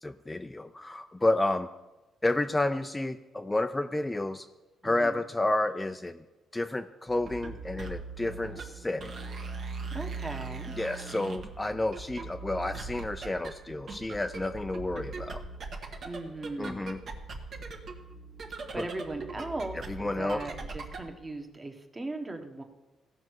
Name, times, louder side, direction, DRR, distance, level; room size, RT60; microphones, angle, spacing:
voice 1, 0.0-1.7 2.2-4.4 4.8-6.2 6.5-9.1 10.8-15.4 16.6-17.0 18.8-18.9 19.9-20.4, left 2 dB, 15° left, 8 dB, 0.4 m, -30 dB
voice 2, 4.8-5.2 9.9-10.7 16.0-17.0 18.7-22.6, right 2 dB, 25° right, 5 dB, 1.2 m, -38 dB
sound 1, 7.1-21.1, right 4 dB, 55° right, 1.3 m, -41 dB
16.0 x 5.4 x 4.7 m, 1.1 s
cardioid pair, 90°, 0 cm